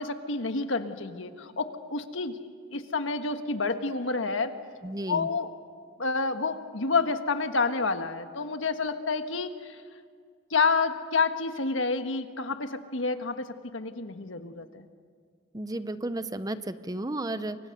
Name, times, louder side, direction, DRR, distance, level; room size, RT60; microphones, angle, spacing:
voice 1, 0.0-2.4 2.7-4.5 5.1-5.5 6.0-9.8 10.5-13.5 13.7-14.8, left 4 dB, 80° left, 8 dB, 1.5 m, -29 dB
voice 2, 4.8-5.3 15.5-17.6, right 1 dB, 20° right, 12 dB, 0.8 m, -33 dB
28.5 x 24.5 x 6.7 m, 2.1 s
head